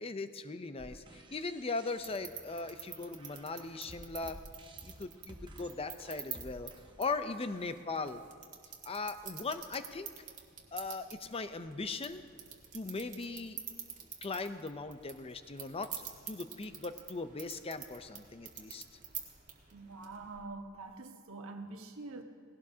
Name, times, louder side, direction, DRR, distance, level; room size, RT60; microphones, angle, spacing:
voice 1, 0.0-4.4 4.8-6.7 7.0-8.2 8.8-10.1 10.7-12.2 12.7-13.6 14.2-15.9 16.3-18.8, left 3 dB, 25° left, 0.6 m, -39 dB
sound 1, 0.8-7.8, right 1 dB, 25° right, 1.0 m, -54 dB
sound 2, 2.0-20.5, right 8 dB, 40° right, 1.6 m, -49 dB
voice 2, 19.7-22.2, right 3 dB, 80° right, 1.2 m, -45 dB
19.5 x 16.5 x 2.8 m
head